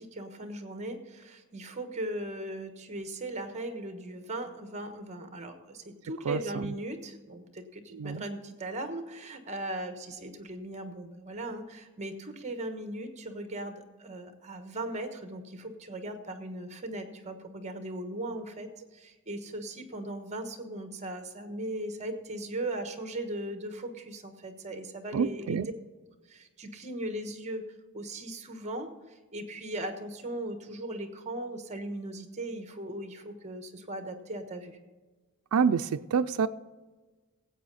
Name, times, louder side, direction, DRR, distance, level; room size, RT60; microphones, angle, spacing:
voice 1, 0.0-25.7 26.3-27.6 27.9-28.9 29.3-34.8, right 1 dB, 30° right, 7 dB, 1.3 m, -38 dB
voice 2, 6.3-6.7 7.9-8.2 25.1-25.7 35.5-36.5, right 6 dB, 90° right, 8 dB, 0.4 m, -27 dB
17.5 x 8.3 x 4.1 m, 1.3 s
head